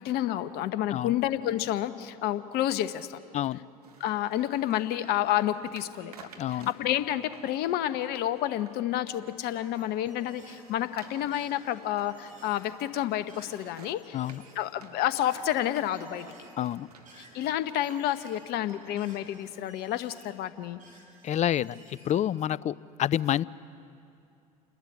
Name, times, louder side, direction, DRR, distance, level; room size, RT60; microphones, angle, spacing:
voice 1, 0.0-3.2 4.0-6.1 6.5-14.2 14.5-16.3 17.2-20.8, left 12 dB, 55° left, 12 dB, 1.1 m, -30 dB
sound 1, 3.8-20.3, right 5 dB, 85° right, 1.4 m, -53 dB
voice 2, 6.4-6.7 14.1-14.4 16.6-16.9 21.2-23.4, left 11 dB, 40° left, 21 dB, 0.5 m, -28 dB
sound 2, 9.4-15.6 15.9-22.1, right 1 dB, 40° right, 6.1 m, -57 dB
29.0 x 11.5 x 9.8 m, 2.5 s
hypercardioid pair, 65°, 19 cm